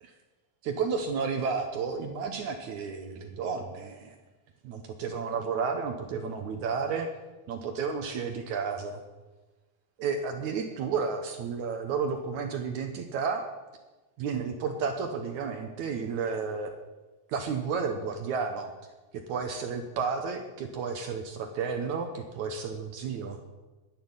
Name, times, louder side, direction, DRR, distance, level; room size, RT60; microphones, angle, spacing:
voice 1, 0.6-4.2 4.6-7.1 7.5-9.0 10.0-13.4 14.2-16.7 17.3-18.7 19.1-23.4, right 5 dB, 65° right, 5 dB, 2.0 m, -32 dB
11.0 x 11.0 x 9.7 m, 1.2 s
omnidirectional pair, 4.3 m